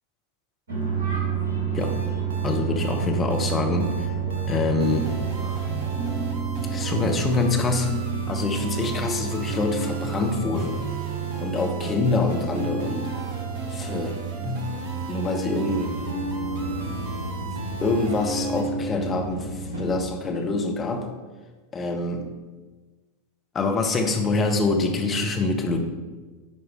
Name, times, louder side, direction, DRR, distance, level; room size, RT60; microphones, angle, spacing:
sound 1, 0.7-20.0, right 6 dB, 65° right, 1.6 m, -30 dB
sound 2, 1.8-18.6, right 3 dB, 50° right, 0.9 m, -36 dB
voice 1, 2.4-4.1 4.5-5.1 5.7-5.9 6.7-7.9 8.3-10.9 11.4-13.1 13.7-14.2 14.4-14.6 15.1-16.0 17.8-21.1 21.7-22.3 23.5-25.8, left 3 dB, 20° left, 4 dB, 0.9 m, -25 dB
9.8 x 4.7 x 3.2 m, 1.3 s
figure-of-eight pair, 90°, 0 cm